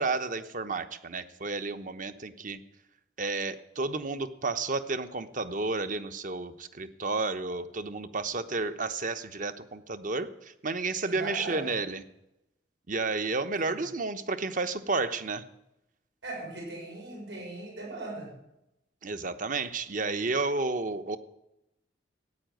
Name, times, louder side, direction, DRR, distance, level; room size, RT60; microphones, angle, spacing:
voice 1, 0.0-2.6 3.2-12.0 12.9-15.4 19.0-21.2, right 3 dB, 50° right, 10 dB, 1.0 m, -31 dB
voice 2, 11.0-11.7 13.7-13.8 16.2-18.3, right 2 dB, 85° right, -1 dB, 6.6 m, -39 dB
15.0 x 9.0 x 9.3 m, 0.88 s
head